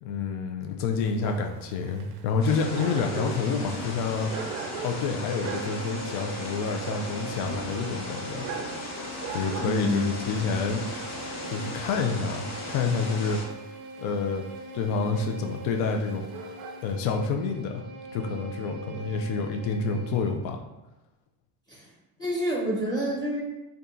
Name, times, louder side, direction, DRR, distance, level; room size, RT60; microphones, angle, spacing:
voice 1, 0.0-4.3 4.8-8.5 9.3-10.9 11.5-13.4 14.0-14.4 14.7-16.3 16.8-17.8 18.1-20.6, left 5 dB, 60° left, 3 dB, 0.5 m, -28 dB
Dog, 0.9-17.0, right 6 dB, 80° right, 0.6 m, -42 dB
sound 1, 2.4-13.4, left 1 dB, 35° left, 0.9 m, -37 dB
Bowed string instrument, 4.1-20.5, right 3 dB, 25° right, 0.4 m, -42 dB
voice 2, 9.6-10.1 21.7-21.9 22.2-23.4, equal, 10° left, -4 dB, 0.7 m, -28 dB
2.7 x 2.3 x 3.7 m, 0.97 s
supercardioid pair, 110°, 45 cm